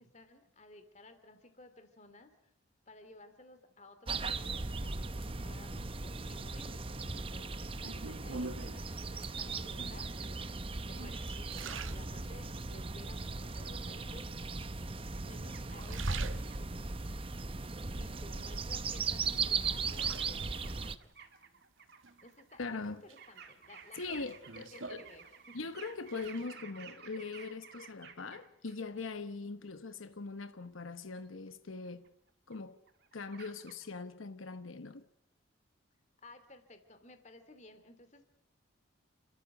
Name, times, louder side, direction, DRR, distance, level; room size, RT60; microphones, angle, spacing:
voice 1, 0.0-2.3 2.9-5.1 5.4-10.4 10.8-14.3 15.2-16.9 17.9-21.2 22.2-25.6 36.2-38.2, left 2 dB, 35° left, 2.8 m, -56 dB
sound 1, 4.1-21.0, right 4 dB, 25° right, 0.8 m, -38 dB
sound 2, 7.9-8.9 9.7-10.2 10.7-12.7 13.2-13.8 14.6-15.3 15.6-16.9 17.4-18.6 19.0-20.7 22.0-22.6 23.1-25.7 26.0-26.5, right 5 dB, 80° right, 1.1 m, -46 dB
sound 3, 15.5-16.0 16.5-16.6 18.0-18.1 18.9-19.0 19.4-19.9 20.1-22.8 23.2-28.8 31.3-31.4 31.8-32.6 32.9-33.9, right 6 dB, 55° right, 2.1 m, -54 dB
voice 2, 22.6-23.0 23.9-25.0 25.5-32.0 32.5-32.8 33.1-35.0, left 3 dB, 90° left, 1.1 m, -41 dB
29.5 x 13.5 x 8.1 m
head